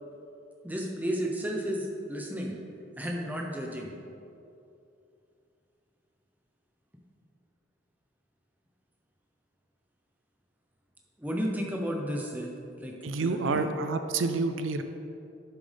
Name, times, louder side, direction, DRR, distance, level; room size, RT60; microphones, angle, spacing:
voice 1, 0.6-2.5 3.0-3.9 11.2-13.7, equal, 10° right, 0 dB, 0.9 m, -33 dB
voice 2, 13.0-14.8, right 3 dB, 80° right, 8 dB, 0.5 m, -28 dB
10.5 x 7.4 x 3.5 m, 2.7 s
head